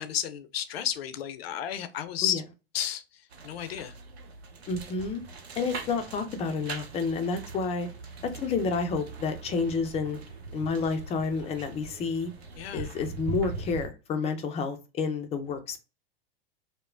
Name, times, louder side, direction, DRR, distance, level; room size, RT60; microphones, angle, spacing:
voice 1, 0.0-2.4 2.7-3.0 3.4-3.9 12.6-12.9, left 10 dB, 70° left, 0.5 m, -32 dB
sound 1, 3.3-13.9, right 4 dB, 80° right, 0.7 m, -41 dB
voice 2, 4.7-5.2 5.6-7.9 8.3-10.2 10.5-12.3 12.7-15.8, left 4 dB, 20° left, 0.4 m, -30 dB
2.9 x 2.0 x 2.4 m
hypercardioid pair, 95°, 31 cm